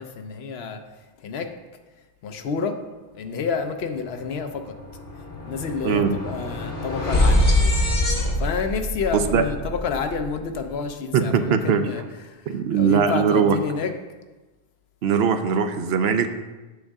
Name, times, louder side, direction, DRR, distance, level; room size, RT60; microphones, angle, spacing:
voice 1, 0.0-1.5 2.2-2.8 3.1-4.8 5.4-7.8 8.4-14.0, left 5 dB, 75° left, 7 dB, 0.9 m, -29 dB
sound 1, 4.0-4.1 4.4-10.7, left 1 dB, 55° left, 1.3 m, -24 dB
voice 2, 5.8-6.2 9.1-9.4 11.1-11.9 12.5-13.6 15.0-16.3, right 7 dB, 80° right, 9 dB, 0.8 m, -20 dB
8.0 x 6.3 x 3.6 m, 1.2 s
omnidirectional pair, 1.1 m